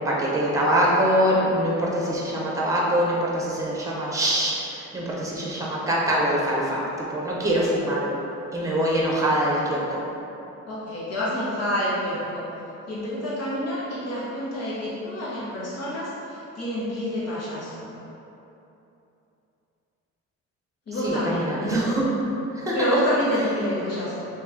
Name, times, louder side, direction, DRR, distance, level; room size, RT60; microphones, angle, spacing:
voice 1, 0.0-8.1 8.5-10.0 21.0-22.1 22.5-23.0, equal, 10° right, -4 dB, 0.8 m, -24 dB
voice 2, 10.6-12.4 12.9-17.9 20.9-21.6 22.7-24.3, equal, 55° left, -9 dB, 1.4 m, -28 dB
3.3 x 3.0 x 3.6 m, 2.9 s
cardioid pair, 90°, 30 cm